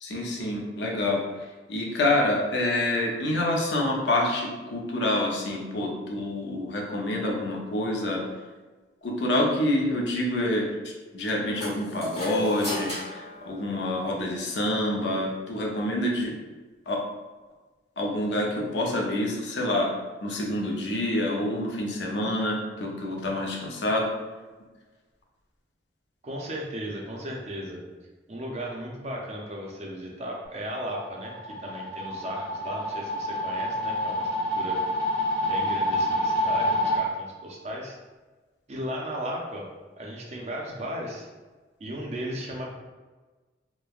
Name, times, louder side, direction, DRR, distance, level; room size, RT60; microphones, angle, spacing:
voice 1, 0.0-1.2 1.7-8.2 9.0-10.7 11.1-16.3 16.9-17.0 18.0-19.9 20.2-24.1, left 1 dB, 75° left, -1 dB, 0.5 m, -27 dB
sound 1, 11.6-14.3, left 2 dB, 35° left, 1.1 m, -34 dB
voice 2, 26.2-27.8 28.3-34.8 35.4-38.0 38.7-39.7 40.0-41.3 41.8-42.7, equal, 35° right, -1 dB, 0.4 m, -35 dB
sound 2, 30.8-37.0, left 1 dB, 10° left, 0.7 m, -27 dB
3.1 x 2.1 x 2.3 m, 1.3 s
head